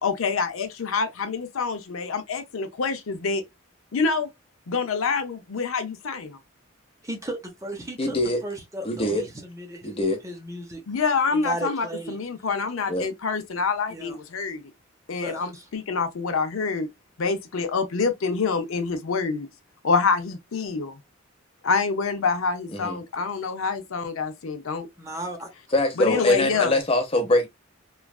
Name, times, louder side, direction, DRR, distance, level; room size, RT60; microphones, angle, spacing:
voice 1, 0.0-3.4 3.9-4.3 4.7-6.4 10.9-14.6 15.1-16.9 17.2-19.5 19.8-21.0 21.6-24.9 26.0-26.7, left 4 dB, 80° left, 0.5 m, -26 dB
voice 2, 7.0-8.2 8.4-10.0 10.2-10.8 11.3-12.2 13.9-14.2 15.2-15.7 25.0-25.5 26.1-26.7, right 2 dB, 15° right, 0.7 m, -35 dB
voice 3, 8.0-8.4 8.8-9.2 9.8-10.2 12.9-13.1 22.7-23.0 25.7-27.5, left 1 dB, 30° left, 0.8 m, -23 dB
3.1 x 2.4 x 2.3 m
head